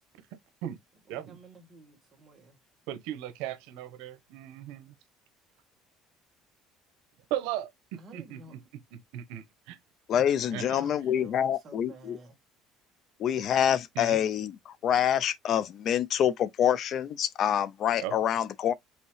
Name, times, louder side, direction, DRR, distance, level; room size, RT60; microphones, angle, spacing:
voice 1, 1.1-2.6 8.0-8.6 10.5-12.4, right 2 dB, 25° right, 1.6 m, -52 dB
voice 2, 2.9-4.9 7.3-8.6 8.9-9.8 10.5-10.8 13.9-14.2 18.0-18.2, right 12 dB, 90° right, 0.9 m, -37 dB
voice 3, 10.1-12.2 13.2-18.7, left 9 dB, 40° left, 0.3 m, -26 dB
5.4 x 2.8 x 3.0 m
cardioid pair, 160°, 0 cm